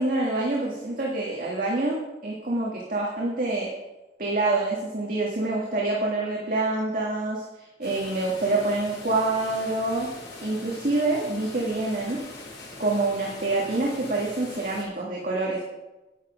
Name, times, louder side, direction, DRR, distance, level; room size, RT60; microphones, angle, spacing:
voice 1, 0.0-3.7 4.2-7.4 7.8-10.1 10.4-12.2 12.8-15.6, right 2 dB, 50° right, -3 dB, 1.8 m, -26 dB
sound 1, 7.8-14.8, left 2 dB, 65° left, 4.5 m, -42 dB
10.0 x 9.5 x 5.1 m, 1.1 s
head